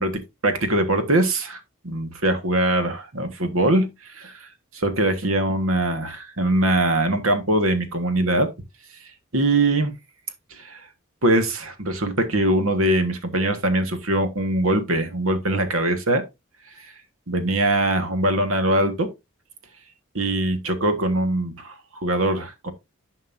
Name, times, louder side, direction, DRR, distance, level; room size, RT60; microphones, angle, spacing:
voice 1, 0.0-4.5 4.7-8.5 9.3-9.9 10.5-10.8 11.2-16.2 17.3-19.1 20.1-22.7, right 1 dB, 75° right, 1.5 m, -22 dB
11.0 x 5.3 x 2.7 m
head